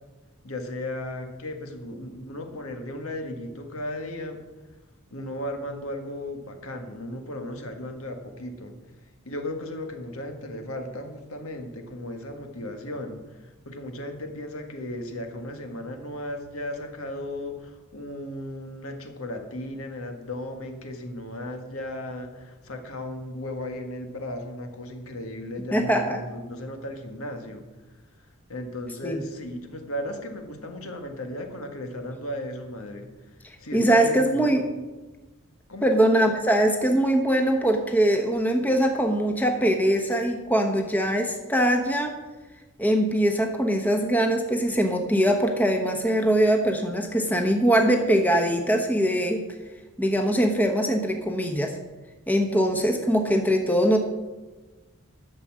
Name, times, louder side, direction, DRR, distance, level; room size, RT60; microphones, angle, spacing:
voice 1, 0.4-4.4 5.1-8.7 9.2-27.6 28.5-33.1 33.6-34.7 35.7-36.1, left 1 dB, 75° left, 5 dB, 1.7 m, -35 dB
voice 2, 25.7-26.2 29.0-29.2 33.7-34.6 35.8-42.1 42.8-49.4 50.0-51.7 52.3-54.0, right 1 dB, 5° left, 4 dB, 1.0 m, -22 dB
12.5 x 6.9 x 7.5 m, 1.2 s
head